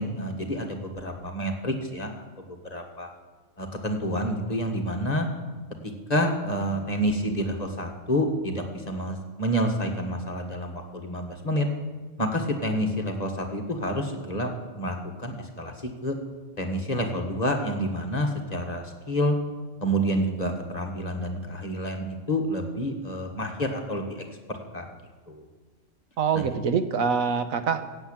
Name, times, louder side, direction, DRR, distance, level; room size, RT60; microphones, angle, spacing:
voice 1, 0.0-2.1 2.7-3.1 3.6-5.3 6.1-11.7 12.2-15.7 16.0-16.2 16.6-19.4 19.8-24.2 24.7-24.9 25.3-25.4 26.3-26.5, equal, 30° left, 2 dB, 1.8 m, -28 dB
voice 2, 26.2-27.9, right 6 dB, 90° right, 10 dB, 1.4 m, -25 dB
15.5 x 8.3 x 8.9 m, 1.3 s
omnidirectional pair, 1.4 m